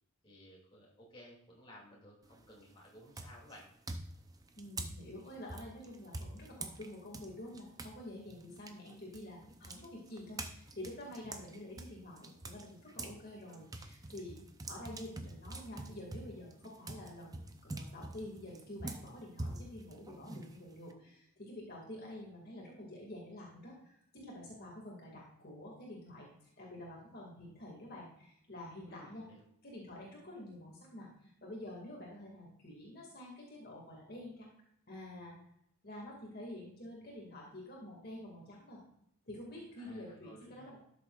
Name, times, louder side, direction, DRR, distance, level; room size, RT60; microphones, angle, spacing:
voice 1, 0.2-3.7 12.9-13.6 28.9-29.4 39.8-40.7, left 1 dB, 25° left, -3 dB, 2.5 m, -57 dB
sound 1, 2.2-2.6 3.1-8.0 8.3-13.2 13.5-20.9, right 2 dB, 15° right, 0.5 m, -45 dB
voice 2, 4.6-14.4 14.7-26.3 26.6-29.2 29.6-34.5 34.9-35.4 35.8-38.8 39.2-40.8, left 1 dB, 45° left, -3 dB, 2.1 m, -48 dB
12.5 x 7.0 x 2.4 m, 0.74 s
head